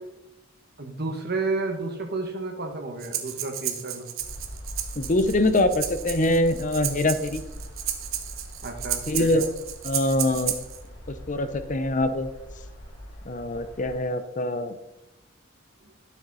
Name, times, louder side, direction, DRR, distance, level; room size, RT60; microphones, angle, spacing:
voice 1, 0.8-4.1 8.6-9.5, right 3 dB, 50° right, 4 dB, 1.3 m, -31 dB
Breathing, 3.0-10.8, right 11 dB, 75° right, 1.0 m, -33 dB
sound 1, 4.2-14.0, equal, 65° left, 3.4 m, -42 dB
voice 2, 5.0-7.4 9.1-9.5 9.8-10.5 11.1-12.3 13.3-14.8, left 1 dB, 40° left, 11 dB, 0.7 m, -24 dB
12.0 x 7.2 x 4.2 m, 0.96 s
head